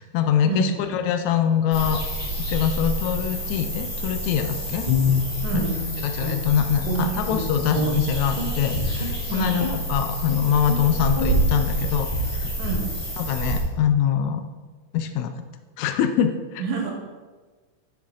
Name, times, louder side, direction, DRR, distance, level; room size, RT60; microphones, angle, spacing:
voice 1, 0.0-2.0 2.5-4.9 5.5-5.6 6.0-12.5 13.2-14.4 14.9-15.3 15.8-16.6, left 8 dB, 80° left, 8 dB, 1.9 m, -24 dB
sound 1, 1.7-13.6, right 1 dB, 20° left, 2.8 m, -28 dB
Guitar, 4.8-6.5 6.8-8.6 9.0-9.2 9.6-9.9 10.2-10.4 10.6-10.8 11.1-11.3, left 3 dB, 20° right, 1.3 m, -26 dB
voice 2, 12.6-12.9 16.6-16.9, right 5 dB, 75° right, 0 dB, 2.7 m, -27 dB
9.5 x 6.8 x 3.8 m, 1.3 s
omnidirectional pair, 3.5 m